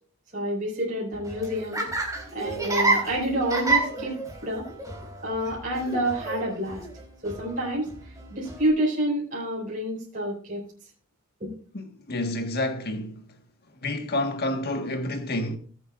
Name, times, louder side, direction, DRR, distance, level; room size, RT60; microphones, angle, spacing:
voice 1, 0.3-1.8 2.3-4.7 5.2-6.8 7.2-7.9 8.3-10.6 11.4-11.5, right 1 dB, 40° right, 5.2 m, -28 dB
Laughter, 1.1-8.7, right 3 dB, 15° right, 3.9 m, -30 dB
voice 2, 11.7-13.2 13.8-15.6, left 1 dB, 50° left, 1.6 m, -29 dB
21.5 x 8.5 x 2.5 m
head